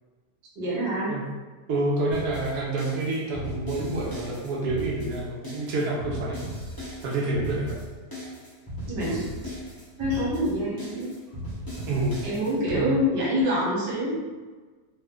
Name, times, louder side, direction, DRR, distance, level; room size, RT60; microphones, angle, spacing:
voice 1, 0.6-1.1 8.9-9.3 10.0-11.1 12.2-14.2, equal, 85° right, -5 dB, 1.6 m, -26 dB
voice 2, 1.7-6.5 7.0-7.8 9.1-9.2 11.9-12.2 12.7-12.9, right 2 dB, 70° right, -4 dB, 1.1 m, -28 dB
sound 1, 2.1-12.8, equal, 20° left, 0.6 m, -37 dB
3.3 x 2.1 x 3.5 m, 1.3 s
omnidirectional pair, 1.8 m